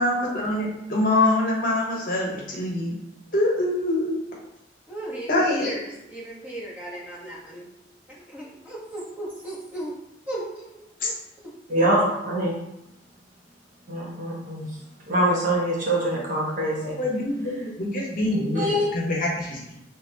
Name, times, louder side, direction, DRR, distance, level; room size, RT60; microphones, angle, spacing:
voice 1, 0.0-2.9 3.3-4.2 5.3-5.7 11.0-11.1 16.8-19.7, left 1 dB, 50° left, -3 dB, 1.0 m, -24 dB
voice 2, 4.9-7.7 8.1-10.0 10.3-11.9, right 1 dB, 10° right, -7 dB, 1.1 m, -37 dB
voice 3, 11.7-12.6 13.9-14.7 15.1-17.0 18.5-18.9, right 1 dB, 50° right, -5 dB, 1.2 m, -24 dB
4.1 x 3.4 x 2.8 m, 0.84 s
head